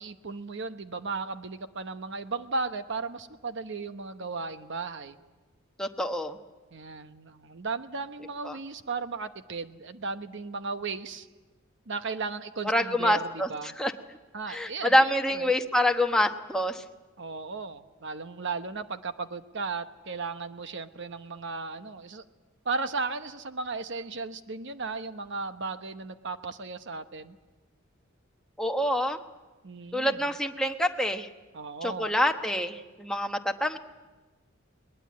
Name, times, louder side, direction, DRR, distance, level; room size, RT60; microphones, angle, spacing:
voice 1, 0.0-5.2 6.7-11.3 11.9-13.7 14.3-15.5 17.2-22.2 22.6-27.4 29.6-30.2 31.5-32.2, right 4 dB, 60° right, 10 dB, 1.0 m, -35 dB
voice 2, 5.8-6.4 8.4-8.6 12.6-13.5 13.8-13.9 14.5-16.8 28.6-29.2 29.9-31.3 31.8-33.8, left 1 dB, 5° left, 4 dB, 1.0 m, -26 dB
21.5 x 20.0 x 8.6 m, 1.2 s
head